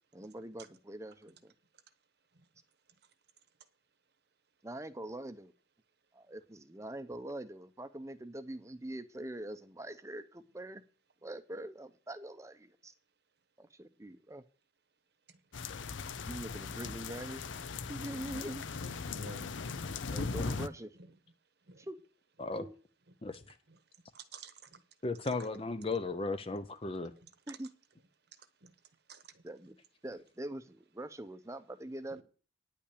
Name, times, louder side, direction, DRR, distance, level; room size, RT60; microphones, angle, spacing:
voice 1, 0.1-1.5 4.6-5.5 6.1-10.8 11.2-12.9 13.6-14.4 16.3-17.4 17.9-18.7 20.1-21.0 21.8-22.0 22.6-22.7 27.5-27.7 29.4-29.8 30.0-32.2, right 1 dB, 15° right, 0.6 m, -43 dB
sound 1, 15.5-20.7, left 4 dB, 75° left, 0.6 m, -39 dB
voice 2, 19.0-19.9 21.7-21.8 24.1-24.8 28.6-28.7 29.1-29.2 32.2-32.3, right 3 dB, 55° right, 1.0 m, -51 dB
voice 3, 25.0-27.1, left 3 dB, 30° left, 0.5 m, -35 dB
9.9 x 5.6 x 8.4 m
head